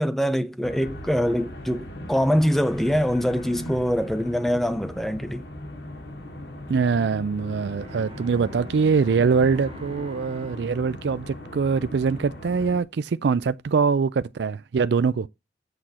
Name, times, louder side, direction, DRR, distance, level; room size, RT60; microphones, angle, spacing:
voice 1, 0.0-5.4, equal, ahead, 0.7 m, -24 dB
sound 1, 0.6-12.8, left 1 dB, 70° left, 2.3 m, -39 dB
voice 2, 6.7-15.3, right 5 dB, 70° right, 0.4 m, -23 dB
Bowed string instrument, 7.7-12.6, right 1 dB, 30° right, 1.3 m, -45 dB
8.1 x 6.3 x 4.3 m
head